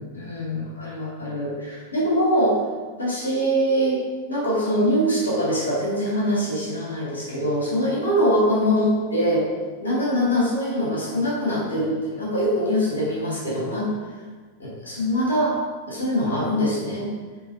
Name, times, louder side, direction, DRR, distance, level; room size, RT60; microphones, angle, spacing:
voice 1, 0.0-2.6 3.0-4.0 4.3-9.5 9.8-13.9 14.6-15.6 15.9-17.1, equal, 75° left, -5 dB, 2.1 m, -23 dB
8.4 x 3.4 x 4.6 m, 1.4 s
figure-of-eight pair, 90°, 0 cm